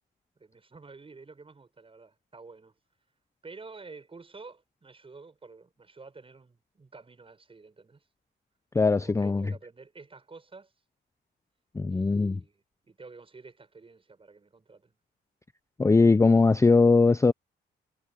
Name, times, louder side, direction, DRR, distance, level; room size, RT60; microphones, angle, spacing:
voice 1, 0.4-2.8 3.4-8.1 9.0-10.7 11.9-15.0, right 4 dB, 25° right, 6.9 m, -50 dB
voice 2, 8.7-9.5 11.7-12.4 15.8-17.3, left 3 dB, 15° left, 0.5 m, -20 dB
cardioid pair, 90°, 20 cm